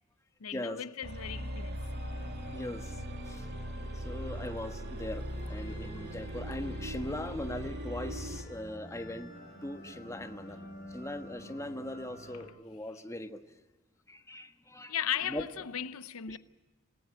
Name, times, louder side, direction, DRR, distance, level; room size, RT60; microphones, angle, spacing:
voice 1, 0.4-1.8 14.9-16.4, left 9 dB, 80° left, 0.7 m, -36 dB
sound 1, 1.0-8.5, equal, 55° right, 2.7 m, -39 dB
sound 2, 1.7-12.5, equal, 55° left, 8.0 m, -49 dB
voice 2, 2.5-3.0 3.3-3.5 3.9-9.3 9.6-10.7 10.9-13.4 14.1-14.9 15.3-15.4 16.3-16.4, left 1 dB, 15° left, 1.4 m, -40 dB
26.5 x 18.0 x 7.7 m
head